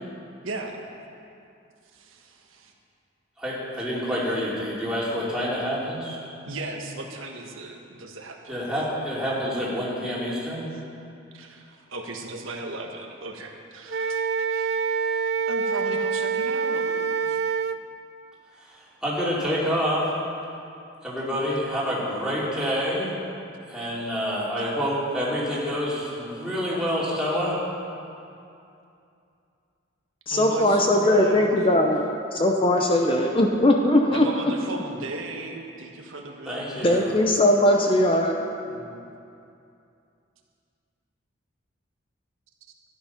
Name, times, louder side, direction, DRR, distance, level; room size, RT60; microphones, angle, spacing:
voice 1, 0.4-0.9 1.9-2.7 6.4-8.7 10.7-10.8 11.3-14.2 14.5-14.8 15.5-17.4 30.3-31.5 33.0-33.1 34.1-36.8 38.6-39.1, right 2 dB, 85° right, 1 dB, 1.4 m, -36 dB
voice 2, 3.4-6.2 8.5-10.7 19.0-20.0 21.0-23.1 23.7-27.6 36.5-37.2, equal, 5° right, -8 dB, 2.8 m, -27 dB
Wind instrument woodwind instrument, 13.9-17.8, right 5 dB, 50° right, 0.4 m, -26 dB
voice 3, 30.3-34.2 36.8-38.4, left 1 dB, 25° left, 2 dB, 0.7 m, -20 dB
13.5 x 9.9 x 5.8 m, 2.6 s
head